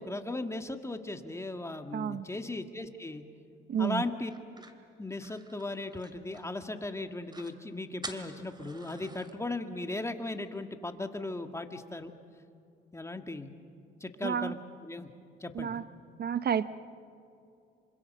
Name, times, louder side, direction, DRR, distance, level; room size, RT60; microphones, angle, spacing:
voice 1, 0.0-3.2 3.8-4.6 5.0-12.1 12.9-13.5 14.0-14.6 14.8-15.1 15.4-15.8, left 2 dB, 15° left, 6 dB, 1.8 m, -37 dB
voice 2, 1.9-2.3 3.7-4.0 14.2-14.5 15.5-15.8 16.2-16.7, right 8 dB, 55° right, 13 dB, 0.8 m, -30 dB
sound 1, 4.3-6.7 7.0-7.1 7.3-7.6 8.0-9.3, right 2 dB, 20° right, 2.6 m, -47 dB
27.0 x 26.0 x 6.7 m, 2.6 s
cardioid pair, 90°, 20 cm